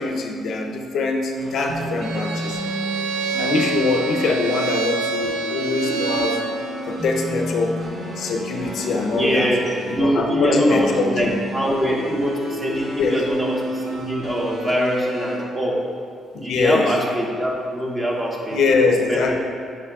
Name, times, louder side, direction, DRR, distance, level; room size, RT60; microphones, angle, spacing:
voice 1, 0.0-2.6 3.4-6.5 6.9-7.8 8.2-9.5 9.9-11.3 13.0-13.2 16.3-16.9 18.5-19.4, left 3 dB, 70° left, 2 dB, 0.5 m, -23 dB
sound 1, 1.4-15.4, right 1 dB, 70° right, 1.1 m, -32 dB
Bowed string instrument, 2.0-6.5, right 3 dB, 85° right, 0.5 m, -27 dB
voice 2, 9.1-9.6 9.9-15.8 16.4-19.4, equal, 25° right, -2 dB, 1.1 m, -23 dB
8.5 x 4.9 x 2.3 m, 2.2 s
cardioid pair, 90°, 0 cm